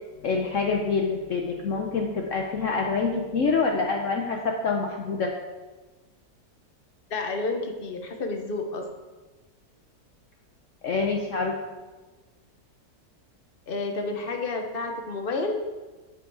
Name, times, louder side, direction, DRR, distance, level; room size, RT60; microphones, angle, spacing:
voice 1, 0.2-5.3 10.8-11.5, left 4 dB, 60° left, 1 dB, 1.2 m, -26 dB
voice 2, 7.1-8.9 13.7-15.5, left 3 dB, 40° left, 3 dB, 1.2 m, -30 dB
9.3 x 8.7 x 4.8 m, 1.2 s
omnidirectional pair, 1.7 m